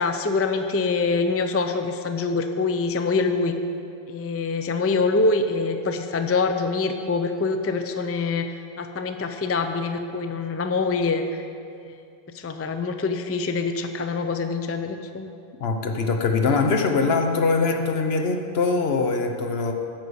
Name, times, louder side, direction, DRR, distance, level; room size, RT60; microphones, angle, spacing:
voice 1, 0.0-3.6 4.1-8.5 8.8-11.4 11.8-11.9 12.3-15.3, left 3 dB, 25° left, 7 dB, 0.3 m, -25 dB
voice 2, 15.6-19.7, left 4 dB, 75° left, 5 dB, 1.1 m, -22 dB
10.5 x 6.7 x 6.3 m, 2.5 s
omnidirectional pair, 1.0 m